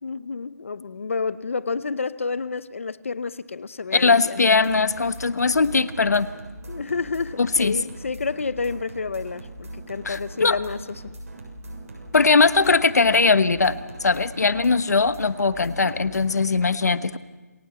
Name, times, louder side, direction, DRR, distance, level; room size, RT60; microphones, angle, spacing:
voice 1, 0.0-4.4 6.7-11.1, left 4 dB, 50° left, 16 dB, 0.8 m, -30 dB
voice 2, 3.9-6.3 7.4-7.8 10.0-10.6 12.1-17.2, left 4 dB, 70° left, 13 dB, 1.2 m, -20 dB
sound 1, 4.5-16.5, right 1 dB, 55° right, 6.9 m, -40 dB
28.0 x 17.0 x 7.0 m, 1.2 s
hypercardioid pair, 175°, 9 cm